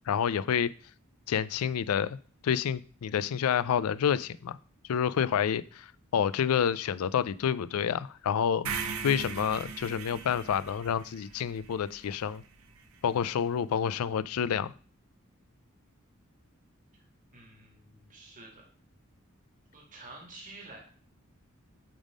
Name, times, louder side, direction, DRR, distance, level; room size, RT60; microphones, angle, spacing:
voice 1, 0.1-0.7 1.3-2.2 2.4-4.6 4.9-5.9 6.1-8.7 9.0-12.4 13.0-14.7, left 8 dB, 90° left, 0.4 m, -28 dB
sound 1, 8.6-12.8, right 5 dB, 75° right, 0.9 m, -39 dB
voice 2, 17.3-18.7 19.7-20.8, right 2 dB, 40° right, 2.5 m, -49 dB
8.7 x 3.6 x 5.2 m
head